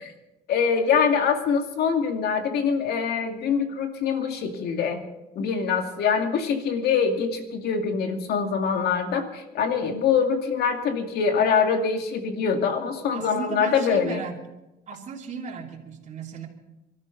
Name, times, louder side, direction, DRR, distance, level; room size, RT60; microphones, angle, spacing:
voice 1, 0.5-5.0 5.4-14.2, left 6 dB, 70° left, 4 dB, 2.4 m, -24 dB
voice 2, 13.1-14.4 14.9-16.5, right 5 dB, 45° right, -3 dB, 3.2 m, -35 dB
25.0 x 13.0 x 4.1 m, 0.96 s
cardioid pair, 110°, 17 cm